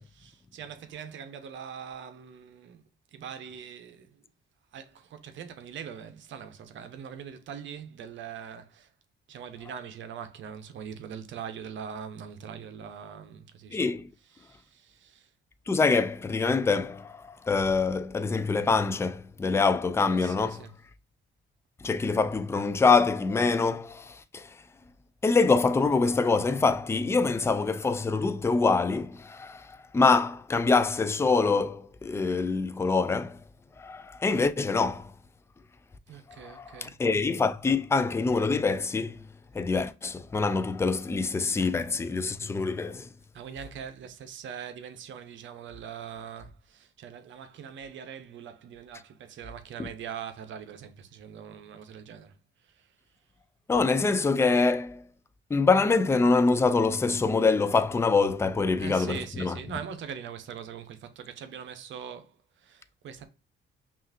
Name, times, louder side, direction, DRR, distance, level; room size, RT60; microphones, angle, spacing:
voice 1, 0.0-2.8 3.1-4.1 4.7-8.9 9.3-13.9 14.2-15.3 20.1-20.8 36.1-37.0 43.3-52.4 52.6-52.9 58.8-63.3, right 8 dB, 70° right, 0.8 m, -42 dB
voice 2, 13.7-14.1 15.7-20.6 21.8-24.5 25.2-33.4 33.8-35.1 36.3-39.2 39.5-43.1 53.7-55.1 55.5-59.5, left 4 dB, 15° left, 0.4 m, -25 dB
5.5 x 2.5 x 2.5 m
cardioid pair, 90°, 20 cm